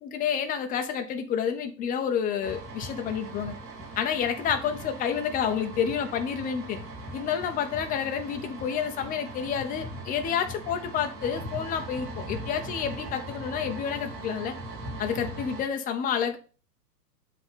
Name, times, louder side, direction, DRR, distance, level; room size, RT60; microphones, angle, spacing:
voice 1, 0.0-3.5 4.0-6.8 7.1-14.5 15.0-16.4, left 8 dB, 15° left, 0.9 m, -29 dB
sound 1, 2.4-15.6, right 1 dB, 25° right, 3.3 m, -40 dB
7.9 x 4.0 x 5.4 m
hypercardioid pair, 130°, 50 cm